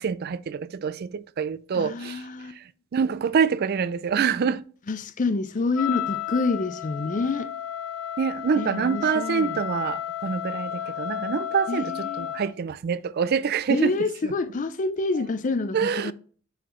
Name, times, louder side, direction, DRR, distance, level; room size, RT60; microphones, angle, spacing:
voice 1, 0.0-4.6 8.2-14.3 15.1-15.2 15.7-16.1, right 6 dB, 45° right, 0.3 m, -26 dB
voice 2, 1.7-2.6 4.9-7.5 8.6-9.6 11.7-12.3 13.7-16.1, left 3 dB, 35° left, 0.4 m, -27 dB
Wind instrument woodwind instrument, 5.7-12.5, left 10 dB, 75° left, 0.7 m, -32 dB
8.9 x 4.0 x 3.1 m
head